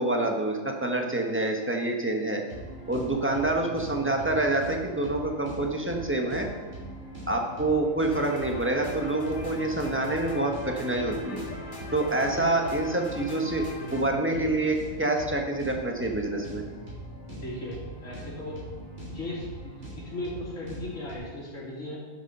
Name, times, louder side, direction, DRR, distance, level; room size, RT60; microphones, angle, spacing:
voice 1, 0.0-2.4 2.9-6.5 7.3-11.4 11.9-16.6, right 2 dB, 10° right, 2 dB, 1.3 m, -27 dB
sound 1, 2.5-21.2, right 1 dB, 60° right, 4.7 m, -42 dB
sound 2, 8.1-14.0, left 3 dB, 40° left, 2.0 m, -41 dB
voice 2, 12.2-12.5 14.3-14.5 17.3-18.7 19.1-22.0, left 1 dB, 70° left, -5 dB, 3.8 m, -37 dB
12.5 x 7.3 x 5.5 m, 1.4 s
omnidirectional pair, 1.4 m